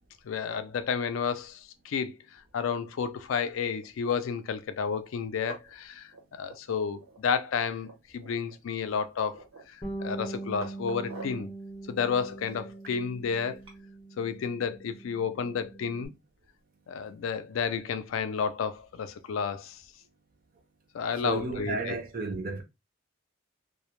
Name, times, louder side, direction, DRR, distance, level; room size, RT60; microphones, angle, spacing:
voice 1, 0.2-2.1 2.5-9.4 10.0-11.5 11.9-13.6 14.2-16.1 16.9-19.8 20.9-21.9, left 6 dB, 80° left, 0.3 m, -31 dB
sound 1, 3.8-4.2 4.8-4.9 5.2-5.8 6.1-7.2 7.4-7.5 7.8-8.6 9.0-9.8 10.2-11.5 12.0-13.8, right 3 dB, 90° right, 1.0 m, -47 dB
Bass guitar, 9.8-16.1, right 2 dB, 25° left, 0.5 m, -42 dB
voice 2, 21.2-22.6, right 3 dB, 45° right, 0.5 m, -32 dB
2.1 x 2.0 x 2.9 m
head